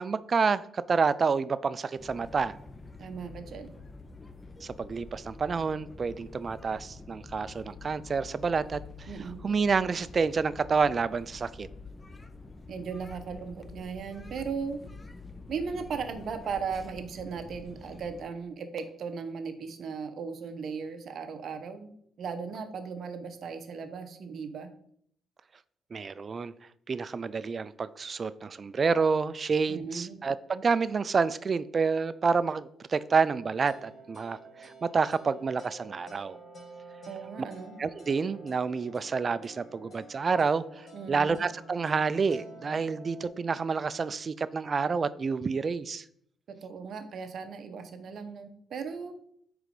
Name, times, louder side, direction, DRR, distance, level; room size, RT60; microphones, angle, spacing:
voice 1, 0.0-2.5 4.6-9.1 9.4-11.7 25.9-26.5 26.9-36.4 37.8-46.0, right 5 dB, 40° right, 15 dB, 0.3 m, -28 dB
sound 1, 2.0-18.3, left 3 dB, 25° left, 0.5 m, -47 dB
voice 2, 3.0-3.7 9.1-9.4 12.7-14.8 15.5-21.9 22.2-24.7 29.7-30.2 37.1-37.8 40.9-41.4 46.5-49.1, right 5 dB, 60° right, 7 dB, 0.7 m, -37 dB
sound 2, 33.7-43.3, right 2 dB, 50° left, 1.8 m, -49 dB
4.7 x 3.8 x 5.1 m, 0.67 s
cardioid pair, 90°, 0 cm